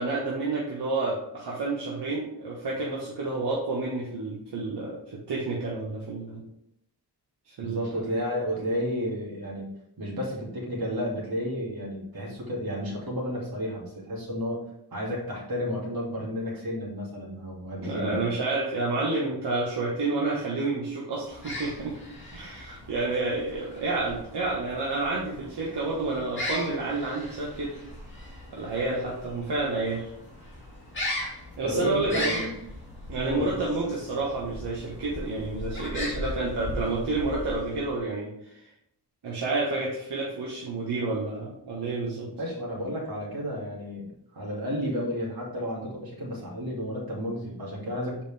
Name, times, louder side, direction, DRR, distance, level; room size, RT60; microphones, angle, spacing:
voice 1, 0.0-6.4 7.5-7.8 17.8-21.9 22.3-27.8 28.5-30.0 31.6-32.4 33.1-38.6 39.2-42.3, right 3 dB, 75° right, -4 dB, 1.5 m, -29 dB
voice 2, 7.6-9.7 10.0-14.6 14.9-18.2 31.6-32.5 33.1-33.4 42.2-48.2, equal, 60° right, -4 dB, 2.5 m, -32 dB
sound 1, 21.2-38.0, left 1 dB, 30° left, 2.1 m, -38 dB
7.2 x 5.0 x 3.5 m, 0.78 s
wide cardioid pair, 145°, 41 cm